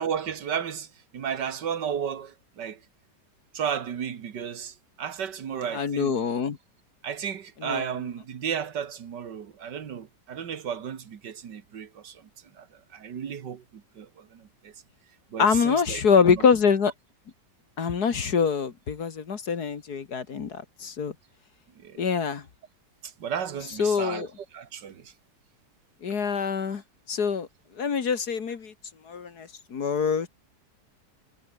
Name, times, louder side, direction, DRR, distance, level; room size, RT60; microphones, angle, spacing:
voice 1, 0.0-2.8 3.5-6.3 7.0-14.8 15.3-16.0 16.3-16.5 21.8-22.1 23.0-24.3 24.5-25.1, right 8 dB, 75° right, 2.2 m, -34 dB
voice 2, 5.7-6.6 7.6-7.8 15.4-16.9 17.8-21.1 22.0-22.4 23.8-24.3 26.0-26.8 27.1-27.5 27.8-28.7 29.1-30.3, left 6 dB, 65° left, 2.2 m, -25 dB
omnidirectional pair, 1.9 m